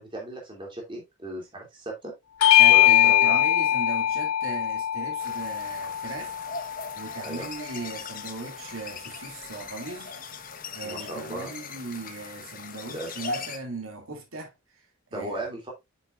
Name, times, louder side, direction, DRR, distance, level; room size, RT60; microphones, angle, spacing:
voice 1, 0.0-2.1 2.7-3.4 7.2-7.5 10.8-11.5 12.9-13.1 15.1-15.7, right 1 dB, 25° right, 2.8 m, -36 dB
Bell / Doorbell, 2.4-7.2, left 12 dB, 90° left, 0.4 m, -21 dB
voice 2, 2.6-6.3 7.0-10.1 10.7-14.5 15.1-15.5, right 3 dB, 80° right, 2.6 m, -38 dB
sound 1, 5.2-13.6, left 4 dB, 40° left, 1.1 m, -39 dB
7.8 x 7.1 x 2.5 m
head